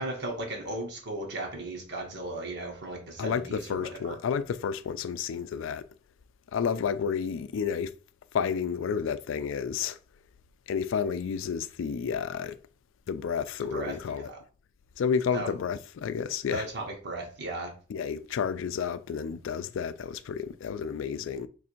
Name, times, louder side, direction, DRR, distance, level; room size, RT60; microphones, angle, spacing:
voice 1, 0.0-4.2 13.7-14.4 15.3-15.5 16.5-17.7, right 2 dB, 60° right, 0.9 m, -36 dB
voice 2, 3.2-5.9 6.5-7.9 8.3-10.0 10.7-12.6 13.1-14.3 15.0-16.7 17.9-21.5, left 6 dB, 75° left, 0.3 m, -31 dB
3.2 x 2.6 x 4.3 m
head